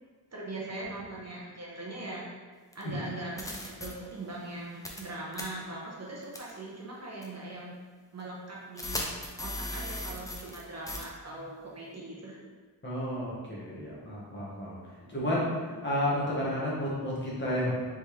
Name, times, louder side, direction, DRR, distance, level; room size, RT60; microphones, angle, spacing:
voice 1, 0.3-2.2 2.7-7.7 8.1-9.1 9.4-12.4 15.0-15.6, right 2 dB, 40° right, -5 dB, 0.9 m, -41 dB
sound 1, 2.7-2.8 3.4-3.9 4.8-5.1 5.3-5.4 6.3-6.5 7.2-7.3 8.8-10.6 10.9-11.0, left 1 dB, 10° left, 0.5 m, -36 dB
voice 2, 12.8-14.8 15.1-15.5 15.8-17.7, left 1 dB, 30° left, -7 dB, 1.2 m, -31 dB
4.1 x 3.6 x 3.2 m, 1.4 s
wide cardioid pair, 140°, 39 cm